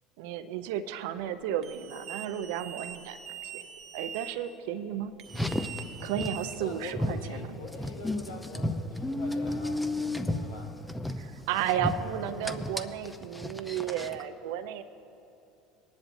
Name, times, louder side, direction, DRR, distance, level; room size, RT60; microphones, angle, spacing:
voice 1, 0.2-3.5 3.9-5.1 6.0-7.5 11.2-14.8, right 10 dB, 70° right, 12 dB, 0.5 m, -33 dB
sound 1, 1.6-4.3 5.2-7.0, right 9 dB, 50° right, 1.0 m, -43 dB
Car, 5.3-14.3, left 1 dB, 5° left, 0.7 m, -34 dB
voice 2, 6.6-10.8, left 2 dB, 80° left, -1 dB, 1.7 m, -44 dB
20.0 x 10.5 x 2.6 m, 2.8 s
hypercardioid pair, 70°, 0 cm